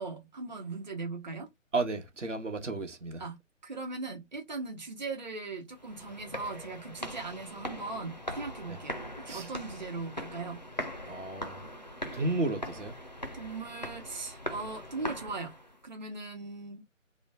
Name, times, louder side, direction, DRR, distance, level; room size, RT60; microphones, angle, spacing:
voice 1, 0.0-1.5 3.2-3.4 3.6-10.6 13.3-15.5 15.8-16.8, right 3 dB, 35° right, 1.0 m, -39 dB
voice 2, 1.7-3.2 8.7-8.8 9.3-9.5 11.1-11.6 12.1-12.9, right 2 dB, 65° right, 1.1 m, -33 dB
sound 1, 5.8-15.8, equal, 35° left, 0.4 m, -41 dB
3.0 x 2.1 x 4.1 m
figure-of-eight pair, 150°, 39 cm